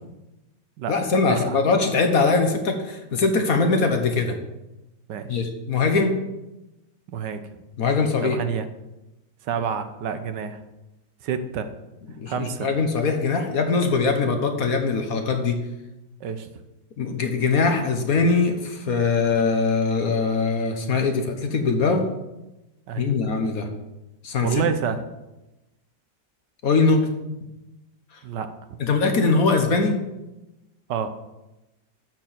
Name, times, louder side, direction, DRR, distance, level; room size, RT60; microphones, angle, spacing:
voice 1, 0.9-4.3 5.3-6.2 7.8-8.4 12.2-15.6 17.0-22.1 23.0-23.7 24.2-24.7 26.6-27.1 28.8-30.0, left 4 dB, 55° left, 5 dB, 1.4 m, -22 dB
voice 2, 7.1-7.4 8.2-8.6 9.5-10.6 11.2-11.7 12.3-12.7 16.2-16.5 22.9-23.1 24.4-25.0 28.2-28.5 30.9-31.1, right 7 dB, 75° right, 10 dB, 1.3 m, -28 dB
12.0 x 4.5 x 7.4 m, 1.0 s
omnidirectional pair, 2.0 m